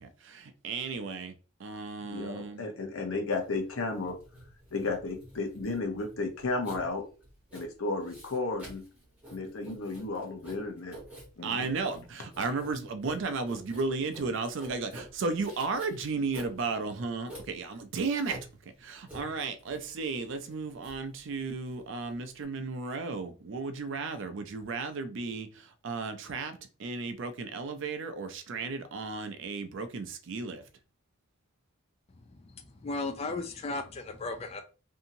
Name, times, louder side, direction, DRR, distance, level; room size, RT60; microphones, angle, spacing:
voice 1, 0.0-1.3 1.6-2.6 11.4-18.4 18.8-30.6, right 4 dB, 60° right, 0.4 m, -34 dB
voice 2, 2.0-4.2 4.7-7.1 7.5-8.8 9.3-11.0 11.4-11.7, left 3 dB, 70° left, 0.8 m, -33 dB
Writing, 3.3-22.4, equal, 5° right, 1.2 m, -50 dB
voice 3, 32.1-34.6, left 3 dB, 30° left, 0.3 m, -36 dB
2.7 x 2.6 x 2.6 m
head